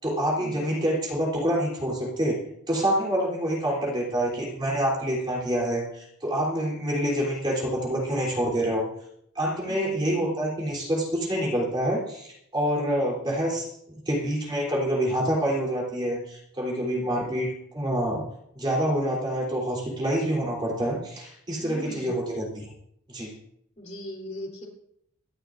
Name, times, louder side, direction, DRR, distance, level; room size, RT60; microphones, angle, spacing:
voice 1, 0.0-2.4 2.7-8.8 9.4-18.2 18.5-22.7 23.1-23.3, right 1 dB, 20° right, -3 dB, 3.5 m, -27 dB
voice 2, 9.7-10.2 16.9-17.3 21.6-22.1 23.8-24.7, equal, 35° left, -2 dB, 3.4 m, -40 dB
24.5 x 11.5 x 2.6 m, 0.75 s
head